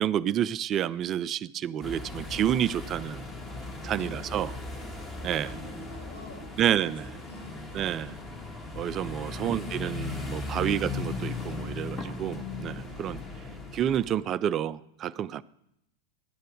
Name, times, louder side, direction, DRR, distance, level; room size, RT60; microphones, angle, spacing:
voice 1, 0.0-3.3 3.8-4.5 5.2-5.6 6.6-7.1 7.7-8.2 8.7-13.2 13.7-15.4, right 10 dB, 30° right, 0.3 m, -29 dB
sound 1, 1.8-14.2, left 3 dB, 15° left, 1.6 m, -37 dB
voice 2, 3.9-4.3 5.4-7.7 9.4-10.8, left 2 dB, 75° left, 2.4 m, -47 dB
12.0 x 8.8 x 5.0 m
figure-of-eight pair, 90°, 0 cm